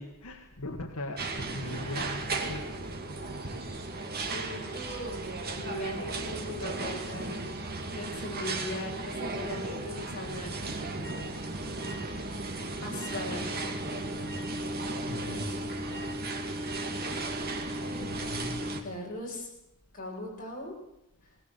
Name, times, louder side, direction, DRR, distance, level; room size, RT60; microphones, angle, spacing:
voice 1, 0.0-3.0 15.0-16.0 16.3-16.6 18.0-18.6 19.0-19.1, left 1 dB, 75° left, 4 dB, 1.7 m, -40 dB
sound 1, 1.2-18.8, right 2 dB, 45° right, 2.4 m, -35 dB
voice 2, 4.3-7.6 7.9-10.5 10.9-11.6 12.2-12.5 12.8-14.1 18.8-19.5 19.9-20.7, left 1 dB, 40° left, -2 dB, 8.0 m, -40 dB
20.5 x 19.0 x 7.9 m, 0.86 s
head